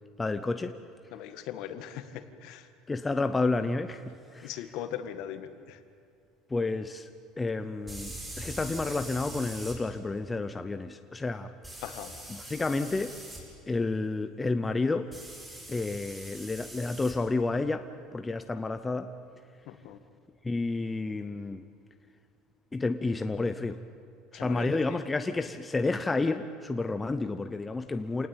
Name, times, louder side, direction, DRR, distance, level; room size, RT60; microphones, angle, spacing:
voice 1, 0.2-0.7 2.9-4.5 6.5-7.1 7.4-11.5 12.3-13.1 13.7-15.1 15.7-17.8 18.1-19.1 20.4-21.6 22.7-23.8 24.3-28.3, left 3 dB, 10° left, 8 dB, 0.7 m, -30 dB
voice 2, 1.1-2.7 4.4-5.8 11.8-12.2 19.7-20.0 24.3-25.0, left 10 dB, 55° left, 9 dB, 1.8 m, -40 dB
sound 1, 4.4-4.5 7.9-9.8 11.6-13.4 15.1-17.2, right 1 dB, 10° right, 5.6 m, -43 dB
27.5 x 18.5 x 9.0 m, 2.4 s
cardioid pair, 170°, 0 cm